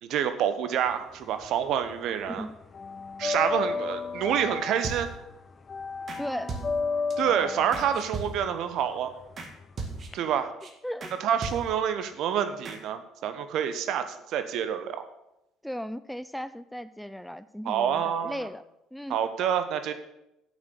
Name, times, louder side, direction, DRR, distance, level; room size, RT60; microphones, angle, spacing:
voice 1, 0.0-2.5 3.2-5.1 7.2-9.1 10.1-10.5 11.2-15.1 17.6-18.5 19.1-19.9, right 9 dB, 60° right, 10 dB, 1.0 m, -27 dB
sound 1, 0.9-2.0 2.2-10.1, left 4 dB, 35° left, 1.1 m, -33 dB
sound 2, 4.8-5.4 6.1-6.2 6.5-7.1 7.7-8.7 9.4-9.5 9.8-10.3 10.6-10.7 11.0-11.1 11.4-11.9 12.6-12.8, right 4 dB, 40° right, 1.9 m, -38 dB
voice 2, 6.2-6.6 10.8-11.1 15.6-18.6 18.9-19.2, equal, ahead, 13 dB, 0.5 m, -36 dB
8.7 x 6.7 x 8.6 m, 0.87 s
figure-of-eight pair, 55°, 0 cm